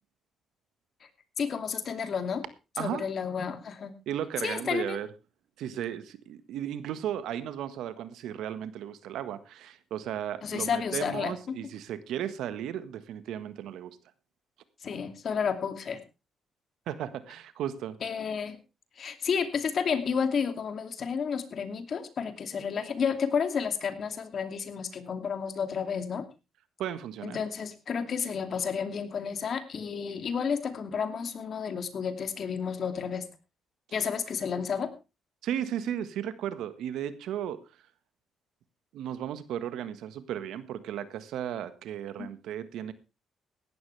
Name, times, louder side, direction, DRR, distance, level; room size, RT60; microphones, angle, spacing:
voice 1, 1.4-2.4 2.8-3.9 4.4-5.0 10.4-11.7 14.8-16.0 18.0-18.6 19.0-26.3 27.2-33.3 33.9-34.9 42.2-42.3, left 6 dB, 55° left, 9 dB, 2.6 m, -31 dB
voice 2, 2.8-3.1 4.1-5.1 5.6-14.0 16.9-18.0 26.8-27.4 35.4-37.6 38.9-42.9, right 10 dB, 80° right, 13 dB, 1.5 m, -35 dB
17.0 x 12.5 x 3.4 m, 0.29 s
cardioid pair, 90°, 0 cm